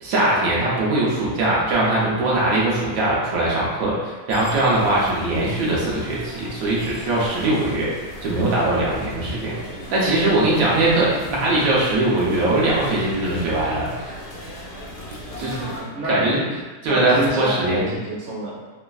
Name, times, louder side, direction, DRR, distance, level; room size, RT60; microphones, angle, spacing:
voice 1, 0.0-7.9 8.2-9.6 9.9-14.2 15.4-15.7 16.1-16.4 16.8-17.9, right 2 dB, 90° right, -5 dB, 1.1 m, -21 dB
sound 1, 4.3-15.8, equal, 75° left, 0.3 m, -37 dB
voice 2, 15.5-16.6 16.9-18.6, right 1 dB, 60° right, -5 dB, 0.9 m, -28 dB
3.1 x 2.4 x 2.3 m, 1.2 s
omnidirectional pair, 1.5 m